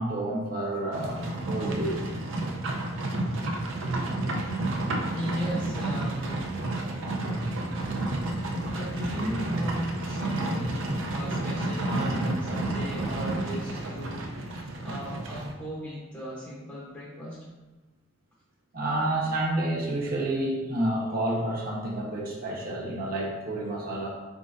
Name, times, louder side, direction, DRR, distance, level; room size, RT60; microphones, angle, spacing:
voice 1, 0.0-2.1 4.2-4.5 7.7-8.1 18.7-24.1, right 1 dB, 45° right, -3 dB, 1.0 m, -30 dB
Livestock farm animals working animals, 0.9-15.5, right 2 dB, 65° right, 0.6 m, -30 dB
voice 2, 5.1-6.5 8.7-17.5, equal, 10° left, -8 dB, 0.8 m, -36 dB
5.0 x 3.7 x 2.5 m, 1.2 s
head